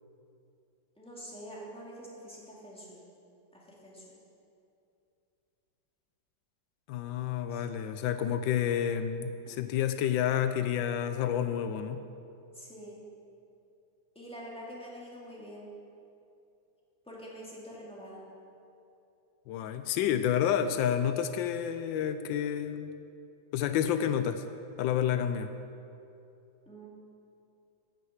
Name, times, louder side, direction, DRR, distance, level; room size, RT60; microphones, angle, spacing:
voice 1, 1.0-3.0 3.5-4.2 7.5-7.6 9.5-9.6 12.5-13.0 14.1-15.7 17.1-18.2 26.7-26.9, equal, 5° left, -5 dB, 2.1 m, -46 dB
voice 2, 6.9-12.0 19.5-22.9 23.5-24.4 24.8-25.5, left 9 dB, 85° left, 10 dB, 1.3 m, -29 dB
10.5 x 6.7 x 8.0 m, 2.7 s
omnidirectional pair, 2.0 m